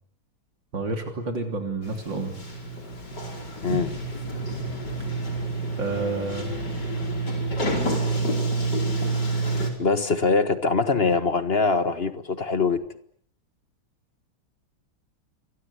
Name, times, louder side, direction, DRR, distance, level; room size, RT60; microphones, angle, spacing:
voice 1, 0.7-2.3 3.7-3.8 5.8-6.5, right 3 dB, 65° right, 4 dB, 3.9 m, -29 dB
Sliding door, 1.8-9.7, right 2 dB, 55° left, 5.1 m, -28 dB
voice 2, 9.8-12.8, left 4 dB, 35° left, 11 dB, 1.4 m, -23 dB
29.5 x 24.0 x 8.3 m, 0.63 s
omnidirectional pair, 2.2 m